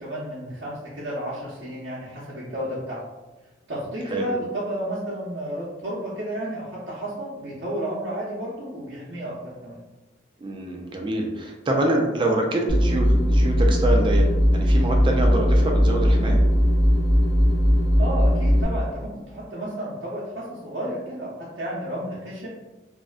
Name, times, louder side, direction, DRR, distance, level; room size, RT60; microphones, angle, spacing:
voice 1, 0.0-3.0 3.7-9.3 9.6-9.8 18.0-21.3 21.6-22.5, right 1 dB, 65° right, -9 dB, 0.6 m, -32 dB
voice 2, 10.4-14.3 14.5-16.4, right 1 dB, 25° right, 1 dB, 0.3 m, -25 dB
sound 1, 12.7-18.6, equal, 60° left, 0.7 m, -19 dB
2.6 x 2.1 x 2.4 m, 1.1 s
head